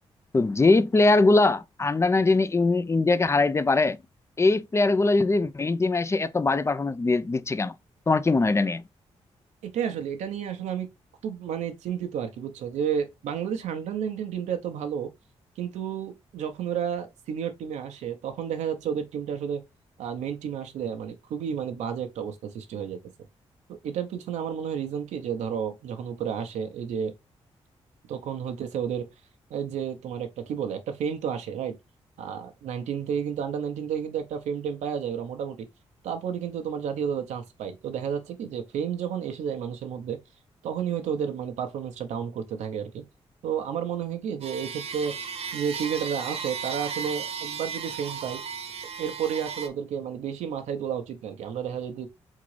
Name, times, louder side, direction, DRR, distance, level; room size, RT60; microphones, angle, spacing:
voice 1, 0.3-4.0 4.4-7.7 8.1-8.8, left 3 dB, 25° left, 0.4 m, -22 dB
voice 2, 9.6-10.9 11.2-15.1 15.6-19.6 20.0-23.0 23.7-27.1 28.1-29.1 29.5-31.8 32.2-35.7 36.0-40.2 40.6-43.0 43.4-45.1 45.5-48.4 49.0-52.1, right 8 dB, 85° right, 0.7 m, -31 dB
sound 1, 44.4-49.7, right 6 dB, 65° right, 1.0 m, -35 dB
3.7 x 3.7 x 3.2 m
supercardioid pair, 50°, 12 cm